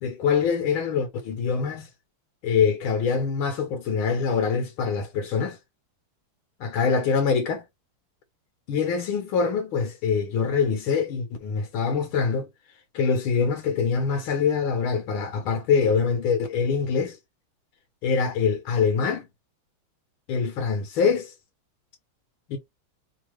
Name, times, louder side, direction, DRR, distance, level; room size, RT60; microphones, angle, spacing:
voice 1, 0.0-1.9 2.4-5.6 6.6-7.6 8.7-12.5 12.9-17.2 18.0-19.3 20.3-21.3 22.5-22.6, left 5 dB, 80° left, 1.9 m, -24 dB
5.1 x 2.8 x 3.2 m
omnidirectional pair, 2.2 m